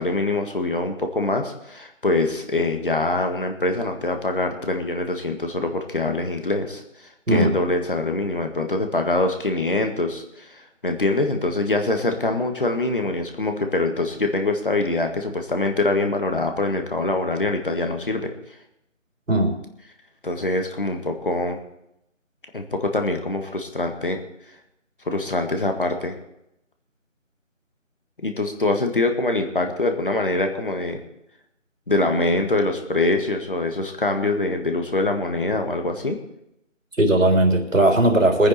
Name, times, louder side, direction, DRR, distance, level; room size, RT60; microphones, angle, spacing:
voice 1, 0.0-6.8 7.3-18.3 20.2-21.6 22.5-24.2 25.1-26.2 28.2-31.0 31.9-36.2, left 2 dB, 45° left, 5 dB, 1.8 m, -24 dB
voice 2, 37.0-38.5, right 1 dB, 80° right, 3 dB, 3.4 m, -18 dB
22.5 x 9.7 x 4.3 m, 0.82 s
figure-of-eight pair, 170°, 39 cm